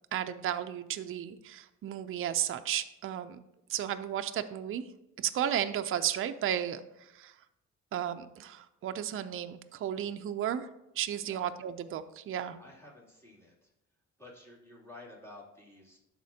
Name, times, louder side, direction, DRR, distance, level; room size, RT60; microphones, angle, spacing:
voice 1, 0.1-3.4 3.7-4.8 5.2-7.3 7.9-10.7 10.9-12.6, right 10 dB, 45° right, 9 dB, 0.5 m, -34 dB
voice 2, 12.6-13.7 14.2-16.0, left 2 dB, 10° left, -5 dB, 2.8 m, -52 dB
12.0 x 4.3 x 2.8 m, 0.87 s
cardioid pair, 90°, 30 cm